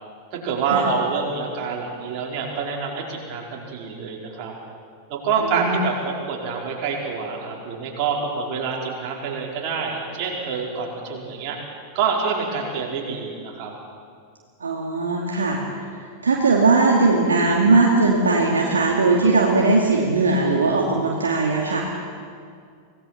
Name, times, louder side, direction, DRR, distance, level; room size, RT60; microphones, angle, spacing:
voice 1, 0.3-4.5 5.1-11.6 11.9-13.7, right 5 dB, 45° right, -1 dB, 4.6 m, -26 dB
voice 2, 5.4-5.8 14.6-15.6 16.2-21.8, right 3 dB, 70° right, -1 dB, 2.4 m, -19 dB
25.5 x 18.0 x 5.8 m, 2.2 s
figure-of-eight pair, 90°, 0 cm